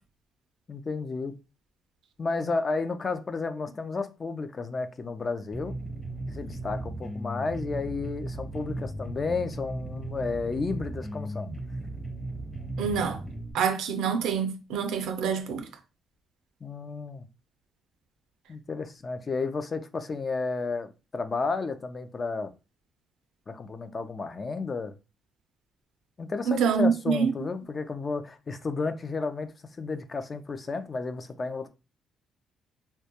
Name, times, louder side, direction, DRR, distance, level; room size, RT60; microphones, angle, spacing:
voice 1, 0.7-1.3 2.2-5.7 6.3-11.5 16.6-17.2 18.5-22.5 23.5-24.9 26.2-29.5 29.8-31.7, left 4 dB, 35° left, 0.3 m, -32 dB
sound 1, 5.5-13.5, right 2 dB, 5° left, 0.7 m, -36 dB
voice 2, 12.8-13.2 13.5-15.6 26.5-27.3, right 6 dB, 85° right, 0.4 m, -26 dB
2.2 x 2.1 x 2.8 m
cardioid pair, 90°, 0 cm